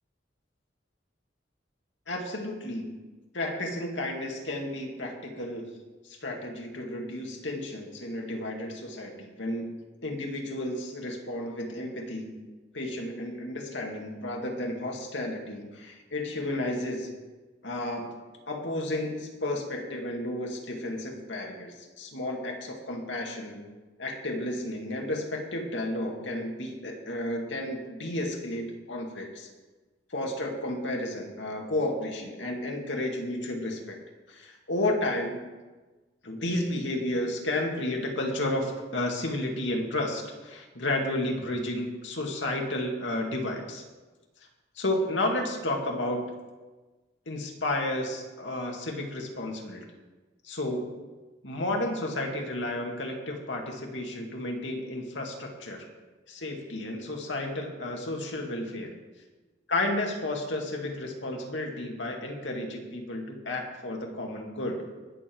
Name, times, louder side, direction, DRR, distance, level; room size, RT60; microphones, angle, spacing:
voice 1, 2.1-3.0 3.3-5.7 6.0-12.4 12.7-17.2 17.6-18.1 18.5-23.7 24.0-29.5 30.1-34.0 34.3-35.5 36.2-43.8 44.8-46.3 47.3-49.9 50.4-50.9 51.4-55.9 56.3-58.9 59.7-64.8, left 1 dB, 80° left, 1 dB, 2.2 m, -32 dB
20.0 x 7.2 x 4.6 m, 1.2 s
head